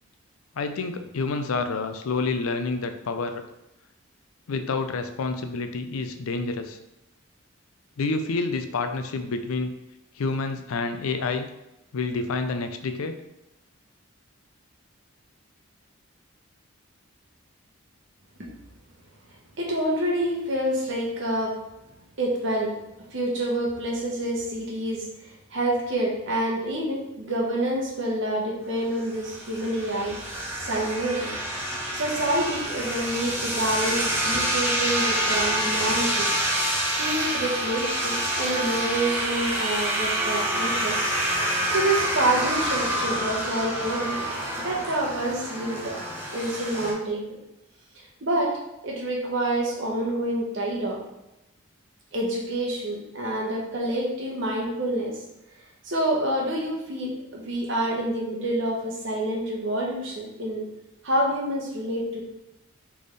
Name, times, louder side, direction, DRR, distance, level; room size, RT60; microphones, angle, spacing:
voice 1, 0.5-3.4 4.5-6.8 8.0-9.7 10.2-11.5 11.9-13.2, left 3 dB, 85° left, 7 dB, 0.5 m, -28 dB
voice 2, 19.6-21.6 22.2-22.8 23.1-30.2 30.6-31.3 31.9-36.3 37.0-41.1 41.7-44.3 44.6-46.0 46.3-47.3 47.9-48.6 48.8-51.0 52.1-55.2 55.8-60.6 61.0-62.3, right 1 dB, 60° right, -2 dB, 1.1 m, -27 dB
sound 1, 29.0-46.9, right 1 dB, 10° right, 0.8 m, -27 dB
4.1 x 3.5 x 3.3 m, 0.91 s
head